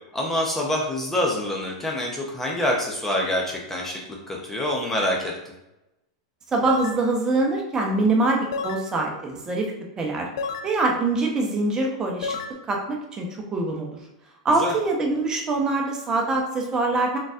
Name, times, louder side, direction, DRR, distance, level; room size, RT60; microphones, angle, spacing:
voice 1, 0.1-5.3 14.6-14.7, left 1 dB, 10° left, -1 dB, 0.7 m, -26 dB
sound 1, 5.0-5.2 6.7-7.0 8.5-8.9 10.4-10.7 12.2-12.5, left 5 dB, 70° left, 0.4 m, -30 dB
voice 2, 6.5-10.3 10.6-12.4 12.7-14.0 14.4-17.2, right 2 dB, 25° right, 0 dB, 0.9 m, -24 dB
3.8 x 3.8 x 2.4 m, 0.93 s
hypercardioid pair, 110°, 3 cm